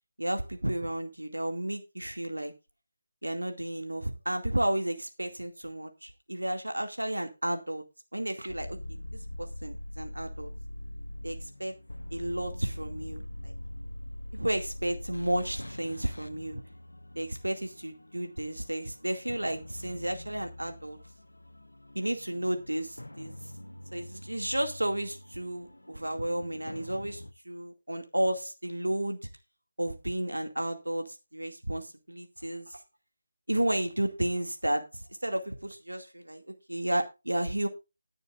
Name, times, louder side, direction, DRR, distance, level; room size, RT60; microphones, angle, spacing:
voice 1, 0.2-2.5 3.2-7.8 8.1-8.8 9.4-10.5 11.2-11.7 12.1-13.5 14.3-16.6 17.1-21.0 21.9-23.3 23.9-29.2 29.8-32.8 33.5-37.7, right 1 dB, 75° right, 5 dB, 2.3 m, -32 dB
sound 1, 8.5-27.3, left 1 dB, 75° left, 1.1 m, -43 dB
20.0 x 7.0 x 2.5 m, 0.26 s
figure-of-eight pair, 155°, 0 cm